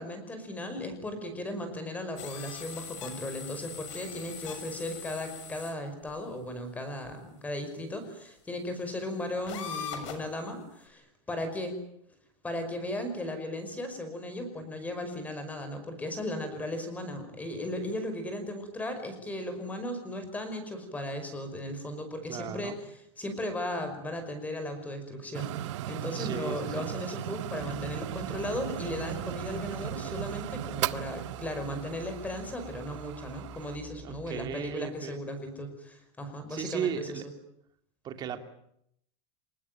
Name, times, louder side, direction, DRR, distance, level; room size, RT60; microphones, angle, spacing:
voice 1, 0.0-11.8 12.4-22.8 23.2-37.2, left 1 dB, 10° left, 8 dB, 5.4 m, -36 dB
sound 1, 2.2-5.7 6.1-6.2 7.0-7.1 9.5-10.3, left 7 dB, 85° left, 6.7 m, -41 dB
voice 2, 22.3-22.8 26.1-26.9 34.0-35.4 36.5-37.2 38.0-38.4, right 8 dB, 25° right, 7 dB, 2.7 m, -36 dB
sound 2, 25.3-33.8, right 14 dB, 75° right, 1.1 m, -37 dB
sound 3, 27.6-34.5, right 3 dB, 5° right, 4.0 m, -49 dB
27.5 x 19.5 x 9.2 m, 0.73 s
supercardioid pair, 165°, 15 cm